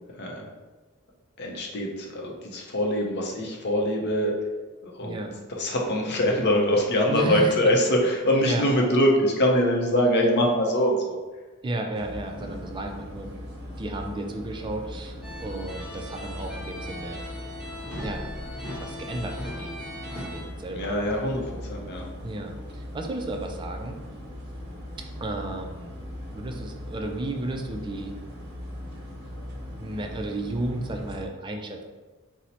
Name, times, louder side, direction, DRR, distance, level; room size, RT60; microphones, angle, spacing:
voice 1, 0.2-0.5 1.4-4.4 4.8-5.2 5.6-11.2 12.4-12.6 20.7-21.4 21.7-22.1, equal, 50° left, 0 dB, 0.6 m, -23 dB
voice 2, 5.0-5.3 7.1-7.5 8.4-8.7 11.6-13.3 13.8-17.2 18.0-18.2 18.8-19.8 20.2-20.9 22.2-24.0 25.2-25.9 26.3-28.1 29.8-31.8, right 2 dB, 20° right, 3 dB, 0.3 m, -33 dB
sound 1, 11.9-31.3, left 1 dB, 50° right, 0.7 m, -39 dB
sound 2, 15.2-20.4, left 1 dB, 5° right, 0.9 m, -38 dB
2.8 x 2.0 x 4.0 m, 1.3 s
head